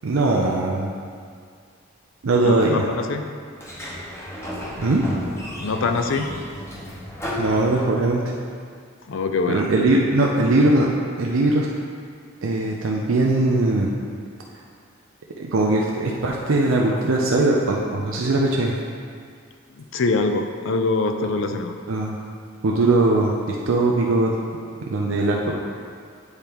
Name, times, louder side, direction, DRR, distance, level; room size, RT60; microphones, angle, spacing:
voice 1, 0.0-0.9 2.2-2.9 4.8-5.0 7.4-8.2 9.5-10.9 11.2-11.7 12.4-13.9 15.4-18.7 21.9-22.2 22.6-24.3 24.9-25.6, right 2 dB, 85° right, -1 dB, 0.5 m, -20 dB
voice 2, 2.4-3.2 5.6-6.3 9.1-9.7 19.8-21.7, left 3 dB, 70° left, 6 dB, 0.5 m, -24 dB
Sliding door, 3.5-8.3, equal, 15° left, 0.9 m, -33 dB
8.1 x 4.3 x 3.5 m, 2.2 s
head